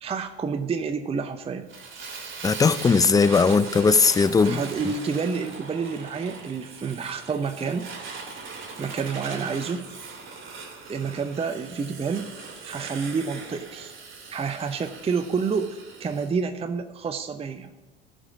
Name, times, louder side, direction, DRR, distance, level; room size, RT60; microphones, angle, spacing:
voice 1, 0.0-1.7 4.4-7.9 8.8-9.9 10.9-12.3 12.6-13.9 14.3-17.7, right 5 dB, 20° right, 0.7 m, -29 dB
Fire, 1.7-16.3, right 4 dB, 40° right, 2.7 m, -40 dB
voice 2, 2.4-4.6, left 4 dB, 10° left, 0.4 m, -19 dB
14.5 x 5.2 x 6.1 m
hypercardioid pair, 85°, 31 cm